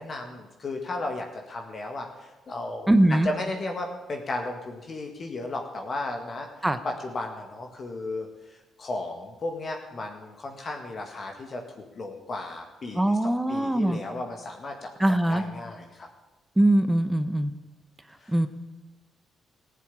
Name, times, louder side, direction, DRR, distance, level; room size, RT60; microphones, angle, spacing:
voice 1, 0.0-16.1 18.2-18.5, left 2 dB, 45° left, 2 dB, 1.9 m, -35 dB
voice 2, 2.9-3.3 6.6-6.8 13.0-14.0 15.0-15.4 16.6-17.5 18.3-18.5, right 1 dB, 10° right, 11 dB, 1.0 m, -21 dB
15.5 x 7.7 x 9.9 m, 1.1 s
cardioid pair, 90°, 0 cm